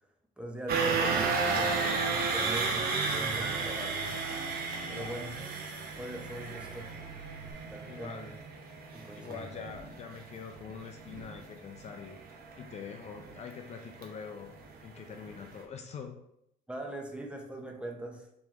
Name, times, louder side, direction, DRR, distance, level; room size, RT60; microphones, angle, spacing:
voice 1, 0.4-4.2 4.9-5.4 5.9-6.9 7.7-8.3 8.9-9.5 16.7-18.3, right 1 dB, 5° right, 1 dB, 0.6 m, -42 dB
sound 1, 0.7-14.7 15.1-15.3 15.6-15.7, right 4 dB, 65° right, 0.8 m, -33 dB
sound 2, 1.9-7.5, right 6 dB, 30° right, 1.2 m, -51 dB
voice 2, 7.9-8.3 9.1-12.2 12.6-14.5 14.8-16.2, left 6 dB, 40° left, 4 dB, 0.4 m, -44 dB
3.3 x 3.1 x 3.5 m, 0.78 s
cardioid pair, 110°, 17 cm